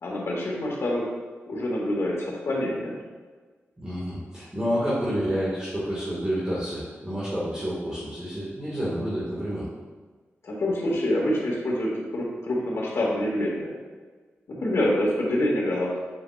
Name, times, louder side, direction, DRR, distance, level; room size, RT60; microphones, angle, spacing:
voice 1, 0.0-1.1 1.5-3.0 10.4-13.7 14.5-16.0, left 1 dB, 65° left, -3 dB, 2.0 m, -26 dB
voice 2, 3.8-9.7, equal, 15° right, -9 dB, 1.8 m, -29 dB
7.5 x 6.8 x 2.5 m, 1.4 s
wide cardioid pair, 90°, 5 cm